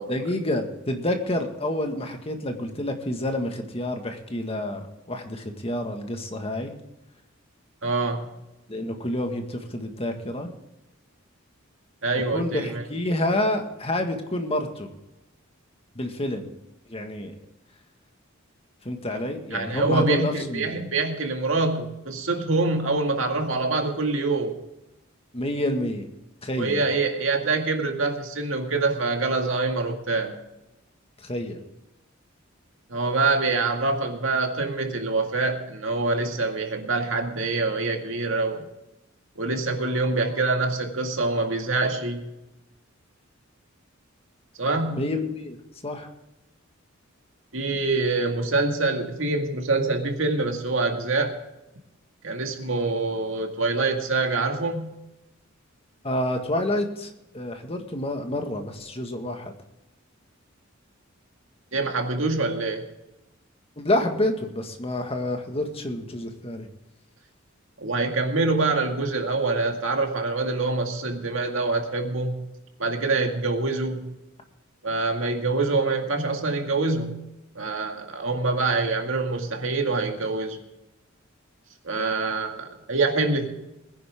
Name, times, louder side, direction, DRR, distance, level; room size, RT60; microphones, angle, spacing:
voice 1, 0.1-6.7 8.7-10.5 12.3-14.9 16.0-16.5 16.9-17.3 18.9-20.7 25.3-26.1 26.4-26.8 31.2-31.7 44.9-45.6 45.8-46.1 56.0-59.5 63.8-66.7, left 1 dB, 30° left, 5 dB, 1.7 m, -28 dB
voice 2, 7.8-8.3 12.0-12.8 19.5-24.5 26.6-30.4 32.9-38.7 39.4-42.3 44.6-45.1 47.5-51.4 52.2-54.9 61.7-62.9 67.8-72.5 72.8-74.1 74.8-77.2 77.6-80.6 81.8-83.5, right 3 dB, 70° right, 3 dB, 2.1 m, -25 dB
21.0 x 10.0 x 3.6 m, 0.93 s
head